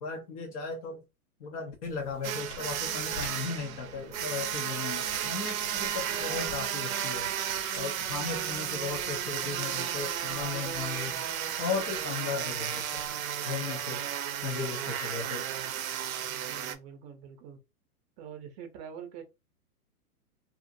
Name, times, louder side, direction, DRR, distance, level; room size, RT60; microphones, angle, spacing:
voice 1, 0.0-1.0 1.4-7.3 7.8-11.2 11.6-13.0 13.4-14.0 14.4-15.4, left 5 dB, 25° left, 0.4 m, -36 dB
sound 1, 1.8-13.1, left 4 dB, 80° left, 1.2 m, -50 dB
sound 2, 2.2-16.7, right 10 dB, 60° right, 0.6 m, -33 dB
voice 2, 16.1-17.6 18.2-19.2, right 8 dB, 30° right, 0.7 m, -45 dB
2.5 x 2.5 x 2.6 m
hypercardioid pair, 130°, 46 cm